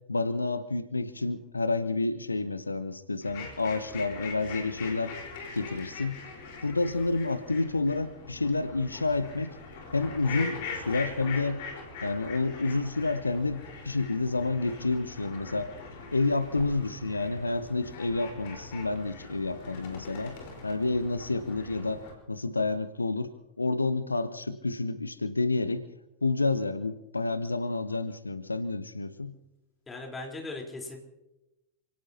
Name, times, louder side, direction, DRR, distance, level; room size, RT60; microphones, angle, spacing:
voice 1, 0.1-5.1 5.5-6.2 6.6-9.6 9.9-11.6 12.0-15.7 16.1-20.4 20.6-23.3 23.6-25.8 26.2-29.3, left 3 dB, 80° left, 13 dB, 0.7 m, -29 dB
sound 1, 3.2-22.1, left 4 dB, 50° left, 4.3 m, -42 dB
voice 2, 29.9-31.0, left 2 dB, 15° left, 0 dB, 3.8 m, -38 dB
28.5 x 18.0 x 2.8 m, 0.96 s
figure-of-eight pair, 90°, 0 cm